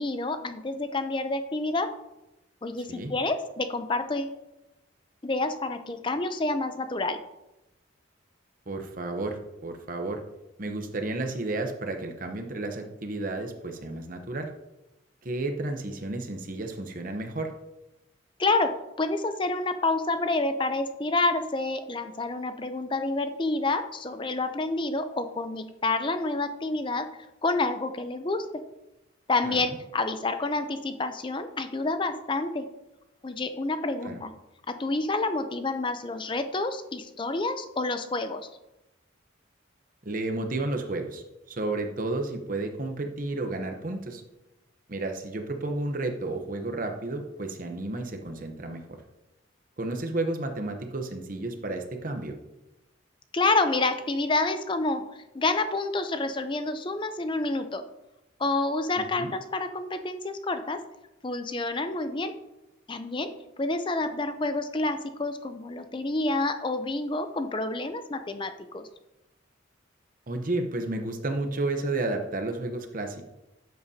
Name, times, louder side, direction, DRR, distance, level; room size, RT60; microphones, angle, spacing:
voice 1, 0.0-1.9 2.6-4.3 5.2-7.2 18.4-27.1 27.4-28.5 29.3-32.7 33.2-34.3 34.7-38.5 53.3-57.8 58.4-60.8 61.2-62.4 62.9-68.9, left 2 dB, 25° left, 9 dB, 0.5 m, -28 dB
voice 2, 8.7-10.2 10.6-14.5 15.2-17.5 29.4-29.8 34.0-34.2 40.0-44.2 44.9-48.8 49.8-52.4 59.2-59.3 70.3-73.2, right 2 dB, 40° right, 5 dB, 0.8 m, -32 dB
12.0 x 7.9 x 2.7 m, 0.95 s
head